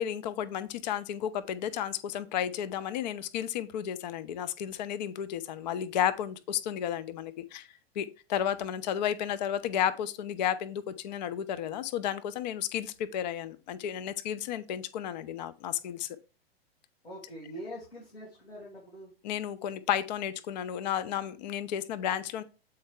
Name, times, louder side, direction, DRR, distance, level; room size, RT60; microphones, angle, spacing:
voice 1, 0.0-7.7 8.0-16.2 19.2-22.4, left 10 dB, 45° left, 0.6 m, -32 dB
voice 2, 17.0-19.1, equal, 80° left, 3.2 m, -43 dB
7.8 x 4.5 x 3.5 m
figure-of-eight pair, 105°, 31 cm